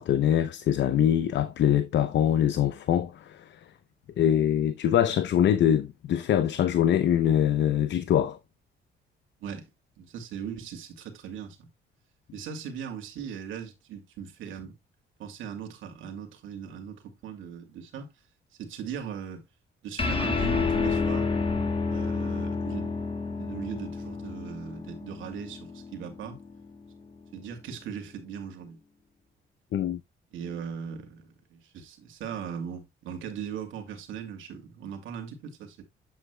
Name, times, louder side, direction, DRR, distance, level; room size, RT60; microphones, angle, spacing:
voice 1, 0.0-3.5 4.2-8.4 29.7-30.0, left 10 dB, 65° left, 0.7 m, -23 dB
voice 2, 10.0-11.7 12.3-14.7 15.2-18.1 18.6-19.4 19.8-21.3 21.9-22.9 23.3-26.4 27.3-28.8 30.3-35.8, right 7 dB, 80° right, 2.4 m, -39 dB
sound 1, 20.0-26.7, left 4 dB, 30° left, 1.9 m, -30 dB
8.4 x 8.1 x 2.2 m
cardioid pair, 90°, 20 cm